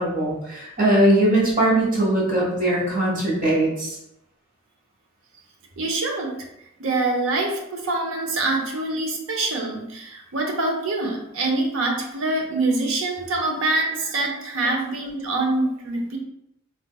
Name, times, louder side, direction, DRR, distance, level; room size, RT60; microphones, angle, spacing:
voice 1, 0.0-4.0, right 1 dB, 40° right, -5 dB, 1.1 m, -20 dB
voice 2, 5.8-6.3 6.8-16.2, right 2 dB, 85° right, 1 dB, 0.7 m, -25 dB
4.0 x 2.4 x 2.3 m, 0.82 s
head